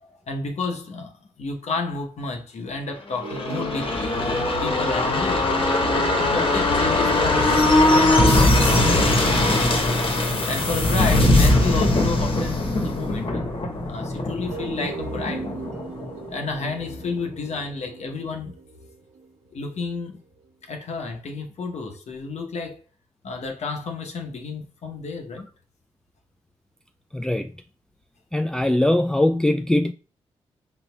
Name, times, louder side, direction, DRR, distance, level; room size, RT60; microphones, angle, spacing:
voice 1, 0.0-5.9 6.2-9.6 10.4-15.5 16.3-18.5 19.5-20.2 20.6-22.8 23.2-25.5, left 4 dB, 65° left, 0.9 m, -31 dB
sound 1, 3.2-16.7 17.0-17.1, left 2 dB, 45° left, 1.1 m, -20 dB
sound 2, 3.2-7.1 8.6-13.1 14.5-19.7, right 5 dB, 70° right, 0.8 m, -39 dB
voice 2, 27.1-27.5 28.3-29.9, left 1 dB, 5° left, 0.3 m, -21 dB
4.1 x 3.9 x 2.2 m
supercardioid pair, 40°, 12 cm